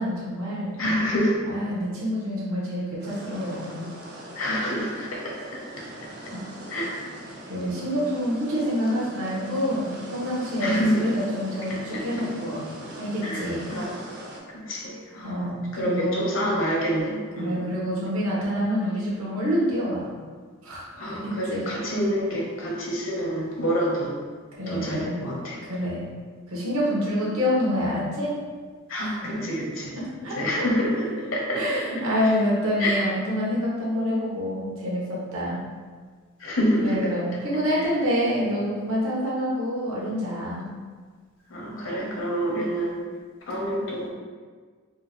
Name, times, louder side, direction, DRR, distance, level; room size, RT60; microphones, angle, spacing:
voice 1, 0.0-0.8 1.5-3.8 5.9-6.1 6.3-6.4 7.5-12.6 13.0-13.6 15.2-16.3 17.4-20.1 20.6-21.6 24.6-25.2 25.6-26.1 26.5-28.3 29.2-29.4 30.2-30.6 31.5-35.6 36.8-40.6, equal, 85° right, -6 dB, 1.3 m, -27 dB
voice 2, 0.8-1.3 4.3-5.8 6.7-7.0 10.6-11.0 13.2-13.9 14.5-15.4 15.7-17.6 21.0-24.1 24.7-25.6 28.9-29.9 30.4-31.6 32.8-33.0 36.4-37.1 37.8-37.9 41.5-43.0 43.5-44.1, equal, 70° left, -3 dB, 1.0 m, -27 dB
sound 1, 3.0-14.4, right 1 dB, 50° right, 0.7 m, -41 dB
4.4 x 2.4 x 3.6 m, 1.5 s
head